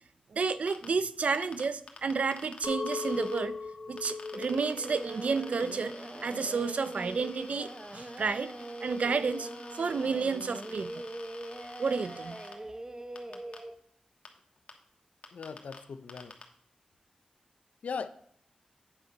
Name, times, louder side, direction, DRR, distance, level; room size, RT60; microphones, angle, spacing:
voice 1, 0.3-3.5 3.9-5.9 6.2-8.5 8.8-11.0 11.8-12.4, right 5 dB, 70° right, 0.5 m, -31 dB
sound 1, 0.7-0.9 1.3-3.4 4.0-12.5 13.2-13.6 14.3-14.4 14.7-14.8 15.2-15.8 16.1-16.4, left 3 dB, 65° left, 1.2 m, -49 dB
Chink clink, 2.6-7.8, left 4 dB, 45° left, 0.9 m, -40 dB
Singing, 4.3-13.7, right 1 dB, 25° right, 0.6 m, -42 dB
voice 2, 15.3-16.3 17.8-18.1, left 5 dB, 85° left, 0.5 m, -38 dB
8.8 x 5.1 x 5.4 m
cardioid pair, 60°, 2 cm